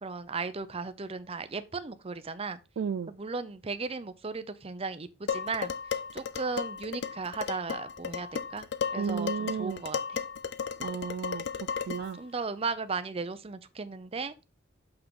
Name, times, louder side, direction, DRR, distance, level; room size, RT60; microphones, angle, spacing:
voice 1, 0.0-2.6 3.1-5.7 6.1-8.7 8.9-10.2 12.2-14.3, right 4 dB, 30° right, 0.6 m, -36 dB
voice 2, 2.8-3.1 9.0-9.8 10.8-11.4 11.9-12.2, right 6 dB, 70° right, 0.3 m, -33 dB
Dishes pots and pans, 5.3-12.2, left 6 dB, 60° left, 0.5 m, -35 dB
6.6 x 5.9 x 3.7 m
head